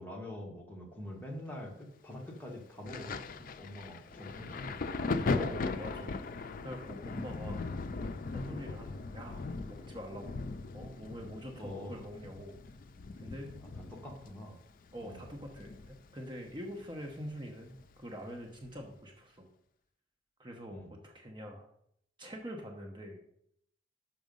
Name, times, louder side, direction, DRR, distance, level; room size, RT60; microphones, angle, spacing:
voice 1, 0.0-4.8 11.6-12.0 13.9-14.6 15.0-15.2 20.7-20.9, left 1 dB, 10° left, 0 dB, 1.4 m, -45 dB
Thunder, 2.9-16.2 16.5-17.8 18.6-18.8, left 3 dB, 50° left, 0.4 m, -39 dB
voice 2, 5.3-6.2 6.6-7.6 8.3-10.4 10.7-12.6 13.2-13.5 14.9-19.5 20.4-21.7 22.2-23.2, equal, 25° right, 1 dB, 1.0 m, -45 dB
6.2 x 6.0 x 5.3 m, 0.71 s
head